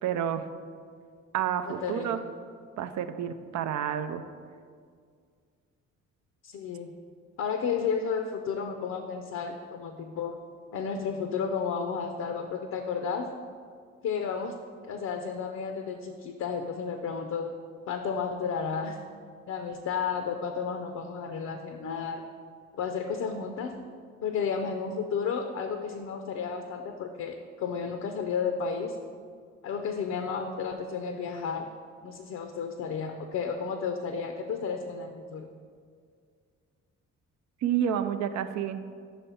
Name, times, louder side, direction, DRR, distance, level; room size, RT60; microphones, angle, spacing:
voice 1, 0.0-0.5 1.3-2.2 2.8-4.2 37.6-38.8, right 9 dB, 70° right, 10 dB, 0.5 m, -29 dB
voice 2, 1.7-2.2 6.4-6.9 7.4-10.4 10.7-13.3 14.0-14.6 14.9-17.5 17.9-19.0 19.5-22.2 22.7-23.7 24.2-29.0 29.6-31.7 32.0-35.5, left 6 dB, 60° left, 5 dB, 0.5 m, -32 dB
5.5 x 4.1 x 5.6 m, 2.1 s
cardioid pair, 90°, 30 cm